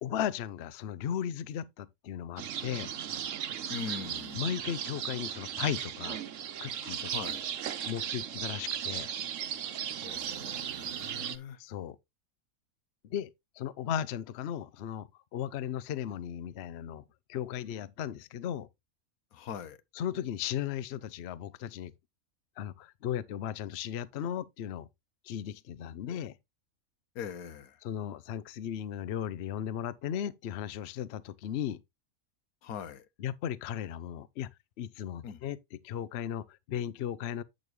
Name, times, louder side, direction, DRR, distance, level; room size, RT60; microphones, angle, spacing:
voice 1, 0.0-2.9 4.3-6.2 6.6-7.1 7.8-9.1 11.6-12.0 13.1-13.3 13.6-17.0 17.3-18.7 20.0-21.9 22.6-24.9 25.2-26.4 27.8-31.8 33.2-34.5 34.8-35.6 35.8-37.4, left 9 dB, 60° left, 0.8 m, -36 dB
sound 1, 2.4-11.4, right 9 dB, 65° right, 1.1 m, -36 dB
voice 2, 3.7-4.5 7.1-7.5 10.0-11.6 19.3-19.8 27.1-27.8 32.6-33.1 35.2-35.4, left 7 dB, 85° left, 1.3 m, -42 dB
8.7 x 6.4 x 3.1 m
omnidirectional pair, 1.5 m